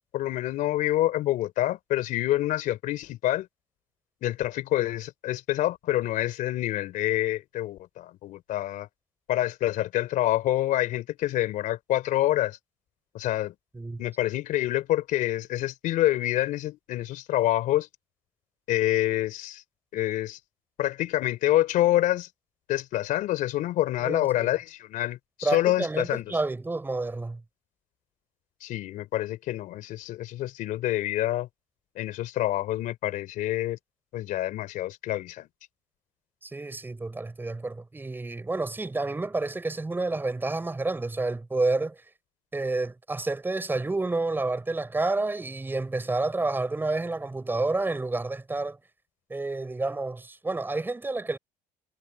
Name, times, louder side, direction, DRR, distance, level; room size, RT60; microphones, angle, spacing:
voice 1, 0.1-3.5 4.2-8.9 9.3-12.6 13.1-13.5 14.0-17.9 18.7-19.6 19.9-20.4 20.8-22.3 22.7-26.2 28.6-31.5 31.9-33.8 34.1-35.5, left 14 dB, 70° left, 3.5 m, -27 dB
voice 2, 24.0-24.5 25.4-27.4 36.4-42.0 42.5-48.8 49.3-51.4, right 2 dB, 15° right, 5.8 m, -29 dB
cardioid pair, 110°, 14 cm